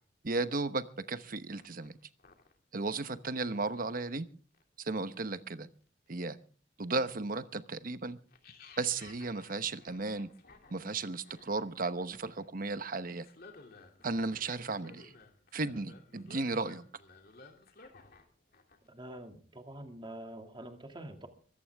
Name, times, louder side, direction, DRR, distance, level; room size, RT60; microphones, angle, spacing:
voice 1, 0.2-1.9 2.7-4.3 4.8-5.7 6.1-6.4 6.8-8.2 8.8-10.3 10.7-13.3 14.0-15.1 15.5-16.8, right 3 dB, 50° right, 1.0 m, -35 dB
sound 1, 1.3-1.4 1.5-3.4 3.7-4.1 4.5-4.6 5.3-5.4 6.1-6.3 7.0-7.1 8.3-18.3 18.5-18.9, left 3 dB, 55° left, 2.7 m, -57 dB
voice 2, 18.8-21.3, right 1 dB, 25° right, 2.3 m, -46 dB
23.0 x 14.0 x 3.5 m
head